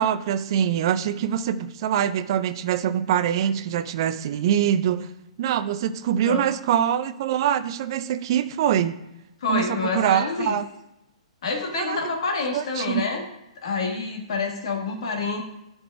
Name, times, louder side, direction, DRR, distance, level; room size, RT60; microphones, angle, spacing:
voice 1, 0.0-5.1 5.4-9.0 9.5-10.6 11.7-12.0 12.5-13.1, right 10 dB, 45° right, 12 dB, 0.5 m, -24 dB
voice 2, 9.4-10.6 11.4-13.2 13.6-15.4, left 4 dB, 60° left, 1 dB, 1.9 m, -27 dB
12.0 x 4.7 x 2.7 m, 0.90 s
figure-of-eight pair, 115°, 3 cm